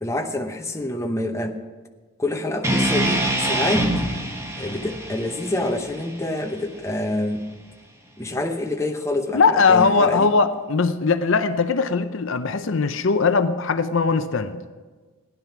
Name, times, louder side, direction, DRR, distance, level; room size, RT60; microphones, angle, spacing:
voice 1, 0.0-1.6 2.2-3.9 4.6-7.5 8.2-10.3, left 1 dB, 15° left, 3 dB, 0.8 m, -27 dB
sound 1, 2.6-6.8, right 1 dB, 15° right, 1.4 m, -25 dB
voice 2, 9.3-14.6, left 4 dB, 60° left, 10 dB, 0.6 m, -20 dB
15.5 x 10.5 x 5.9 m, 1.4 s
head